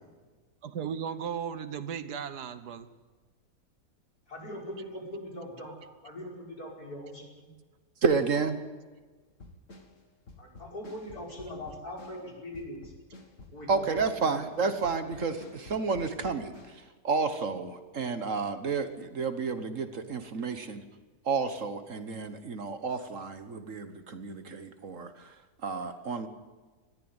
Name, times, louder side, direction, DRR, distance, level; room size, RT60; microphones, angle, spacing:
voice 1, 0.6-2.9, right 7 dB, 75° right, 13 dB, 1.7 m, -36 dB
voice 2, 4.3-5.7 6.0-7.5 10.4-12.9 13.5-14.4, left 1 dB, 65° left, 0 dB, 5.7 m, -41 dB
voice 3, 8.0-8.6 13.7-20.8 21.2-25.3 25.6-26.3, right 4 dB, 55° right, 10 dB, 1.5 m, -31 dB
sound 1, 9.3-16.8, left 2 dB, 50° left, 2.6 m, -51 dB
20.5 x 14.5 x 9.6 m, 1.3 s
omnidirectional pair, 1.7 m